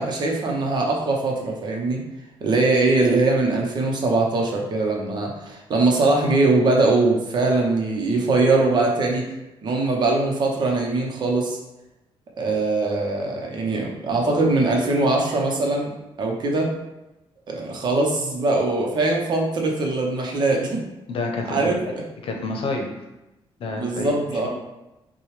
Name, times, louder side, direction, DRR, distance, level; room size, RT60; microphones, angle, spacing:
voice 1, 0.0-2.0 2.4-9.3 9.6-11.6 12.4-15.9 16.2-16.7 17.5-20.8 21.5-21.8 23.7-24.5, right 3 dB, 45° right, 0 dB, 0.9 m, -21 dB
voice 2, 21.1-21.9 22.2-22.8 23.6-24.5, left 3 dB, 65° left, 2 dB, 0.8 m, -29 dB
6.0 x 2.3 x 3.2 m, 0.98 s
cardioid pair, 160°, 10 cm